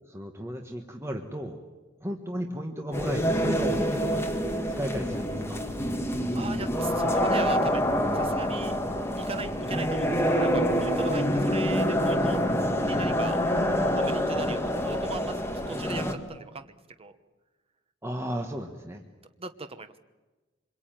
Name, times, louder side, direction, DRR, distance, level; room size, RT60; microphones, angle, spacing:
voice 1, 0.1-1.6 2.0-5.6 12.6-12.8 18.0-19.0, equal, 15° right, 3 dB, 1.5 m, -34 dB
sound 1, 2.9-16.1, equal, 15° left, 2.1 m, -26 dB
voice 2, 6.3-7.8 8.1-8.8 9.2-12.4 12.9-13.4 13.9-15.3 15.7-17.1 19.4-19.9, right 3 dB, 30° right, 9 dB, 1.1 m, -38 dB
26.0 x 22.0 x 9.2 m, 1.2 s
head